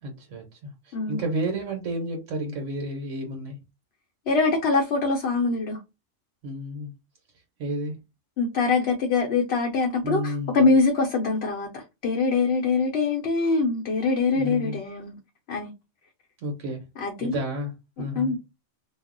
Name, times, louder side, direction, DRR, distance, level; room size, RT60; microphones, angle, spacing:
voice 1, 0.0-3.6 6.4-6.9 7.6-8.0 10.0-10.7 14.3-14.8 16.4-16.8 17.2-18.4, right 1 dB, 75° right, 1.0 m, -31 dB
voice 2, 4.3-5.8 8.4-15.1 15.5-15.7 17.0-17.3 18.2-18.4, left 4 dB, 60° left, 0.7 m, -23 dB
2.3 x 2.0 x 3.6 m
omnidirectional pair, 1.3 m